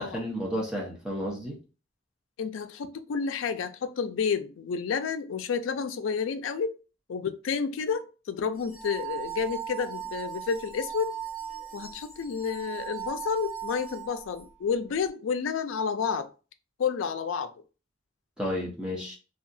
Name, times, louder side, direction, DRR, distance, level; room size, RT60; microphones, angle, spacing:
voice 1, 0.0-1.6 18.4-19.1, equal, 5° right, 0.7 m, -32 dB
voice 2, 2.4-6.8 7.1-11.2 11.7-16.3 16.8-17.5, left 6 dB, 85° left, 0.4 m, -30 dB
sound 1, 8.6-14.4, right 9 dB, 40° left, 1.4 m, -38 dB
2.8 x 2.3 x 2.6 m
head